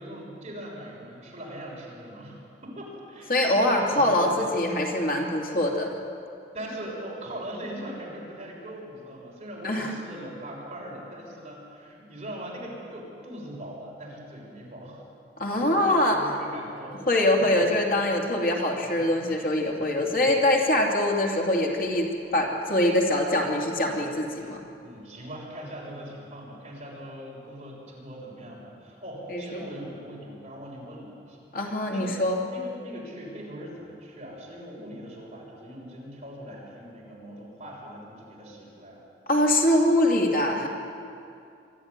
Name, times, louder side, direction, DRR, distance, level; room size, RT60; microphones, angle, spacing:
voice 1, 0.0-4.5 6.5-15.1 15.5-17.0 17.3-17.6 18.9-19.3 19.9-20.4 24.8-31.4 31.9-32.1 32.5-39.0, right 1 dB, 35° right, -4 dB, 6.4 m, -40 dB
voice 2, 3.3-5.9 9.6-9.9 15.4-16.2 17.1-24.6 29.3-29.7 31.5-32.4 39.3-40.7, left 1 dB, 50° left, 0 dB, 2.7 m, -23 dB
24.0 x 13.5 x 9.8 m, 2.6 s
head